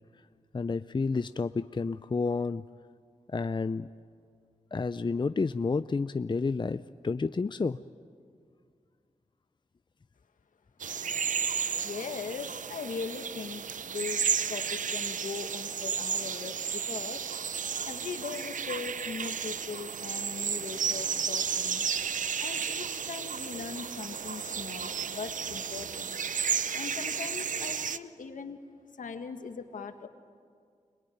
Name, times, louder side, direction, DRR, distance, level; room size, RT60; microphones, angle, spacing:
voice 1, 0.5-2.6 3.3-3.9 4.7-7.8, left 4 dB, 35° left, 13 dB, 0.6 m, -30 dB
sound 1, 10.8-28.0, right 7 dB, 70° right, 0.7 m, -33 dB
voice 2, 11.8-17.3 17.8-21.9 22.4-26.2 26.7-28.6 29.0-30.1, left 5 dB, 75° left, 7 dB, 1.8 m, -40 dB
26.0 x 21.5 x 9.4 m, 2.2 s
cardioid pair, 45°, 13 cm